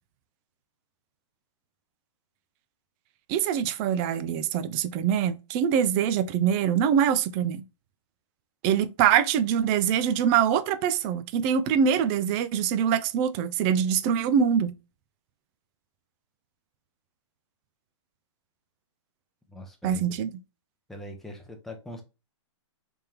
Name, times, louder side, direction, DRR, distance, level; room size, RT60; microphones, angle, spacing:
voice 1, 3.3-7.6 8.6-14.7 19.8-20.3, right 8 dB, 30° right, 0.4 m, -24 dB
voice 2, 19.5-20.0 20.9-22.0, left 1 dB, ahead, 0.8 m, -41 dB
3.4 x 3.4 x 2.9 m
hypercardioid pair, 135°, 16 cm